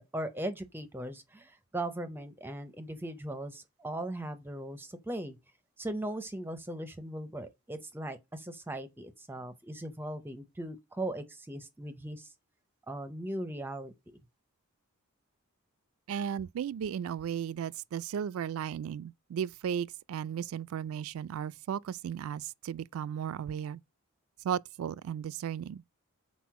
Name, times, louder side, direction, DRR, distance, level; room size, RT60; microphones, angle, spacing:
voice 1, 0.0-5.4 5.8-12.3 12.9-13.9, right 1 dB, 10° right, 0.5 m, -38 dB
voice 2, 16.1-23.8 24.4-25.8, right 8 dB, 80° right, 0.3 m, -35 dB
6.1 x 4.2 x 4.6 m
head